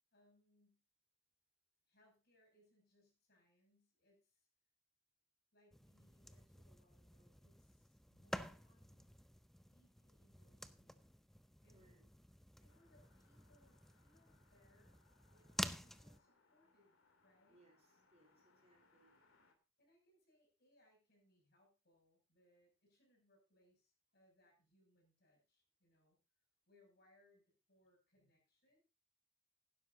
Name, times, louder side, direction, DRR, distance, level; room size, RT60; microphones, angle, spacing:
voice 1, 0.1-0.8 1.9-4.5 5.5-9.2 9.5-11.1 11.6-12.0 12.6-15.0 15.3-17.0 17.2-17.6 19.8-26.2 26.7-28.8, left 1 dB, 50° left, 0 dB, 6.8 m, -74 dB
sound 1, 5.7-16.2, equal, ahead, 0.5 m, -51 dB
voice 2, 11.7-12.0 17.5-19.1, right 2 dB, 30° right, 2 dB, 4.0 m, -71 dB
sound 2, 12.7-19.5, left 3 dB, 80° left, 2.7 m, -75 dB
16.0 x 12.0 x 2.7 m, 0.29 s
head